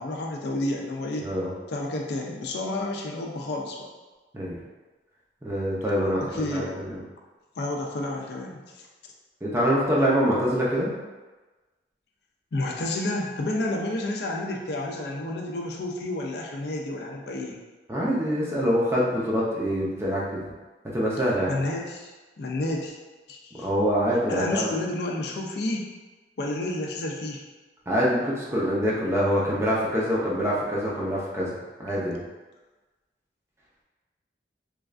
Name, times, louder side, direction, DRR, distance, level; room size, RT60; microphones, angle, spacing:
voice 1, 0.0-1.3 1.7-3.9 6.2-6.7 7.6-8.9 12.5-17.6 21.5-23.0 23.3-23.7 24.3-25.9 26.4-27.4, left 2 dB, 65° left, 0 dB, 0.4 m, -30 dB
voice 2, 1.2-1.5 4.3-4.6 5.4-7.0 9.4-10.9 17.9-20.4 20.9-21.5 23.6-24.7 27.9-32.2, equal, 15° right, -6 dB, 0.5 m, -25 dB
3.1 x 2.3 x 2.4 m, 1.2 s
head